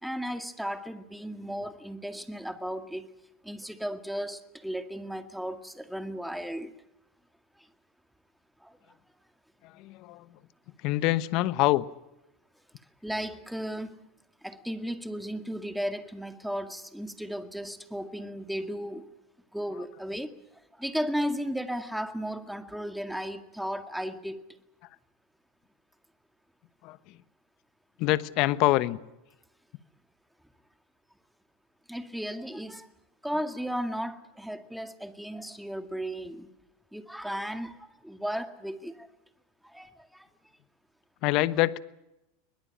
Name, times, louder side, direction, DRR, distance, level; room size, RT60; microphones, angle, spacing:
voice 1, 0.0-3.1 3.4-6.7 7.6-7.7 8.6-8.8 13.0-14.0 14.4-19.1 19.5-20.3 20.7-24.4 31.9-32.9 33.2-36.5 36.9-39.1 39.6-40.3, equal, ahead, 8 dB, 2.0 m, -35 dB
voice 2, 9.8-10.2 10.8-11.8 26.8-27.0 28.0-29.0 41.2-41.8, left 17 dB, 55° left, 16 dB, 1.1 m, -25 dB
22.5 x 20.5 x 8.7 m, 0.91 s
hypercardioid pair, 95°, 0 cm